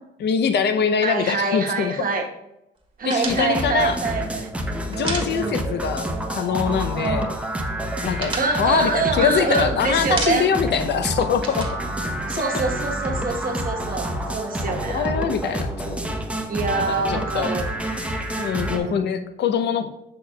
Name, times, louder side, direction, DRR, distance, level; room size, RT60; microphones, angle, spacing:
voice 1, 0.2-1.9 3.1-4.0 4.9-7.3 8.0-11.7 14.9-16.0 16.9-17.5 18.4-19.9, left 7 dB, 60° left, 10 dB, 0.6 m, -23 dB
voice 2, 1.0-2.2 3.0-4.5 4.9-5.6 6.9-7.3 8.4-10.5 12.3-15.1 16.5-17.7 18.5-19.1, right 4 dB, 45° right, 2 dB, 1.1 m, -25 dB
sound 1, 3.1-5.9 6.1-6.3 6.6-7.3 7.6-9.6 10.0-10.7 11.0-12.8, right 3 dB, 25° right, 1.3 m, -33 dB
sound 2, 3.2-18.8, right 1 dB, 5° right, 0.8 m, -28 dB
6.7 x 6.1 x 2.3 m, 0.87 s
cardioid pair, 90°, 20 cm